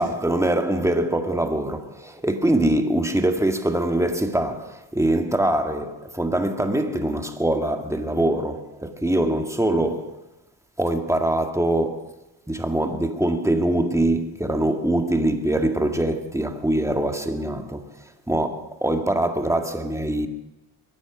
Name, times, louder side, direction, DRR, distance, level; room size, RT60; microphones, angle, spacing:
voice 1, 0.0-10.2 10.8-12.1 12.5-17.8 18.3-20.3, right 1 dB, 5° right, 1.9 m, -23 dB
23.5 x 9.8 x 6.2 m
cardioid pair, 55°, 50 cm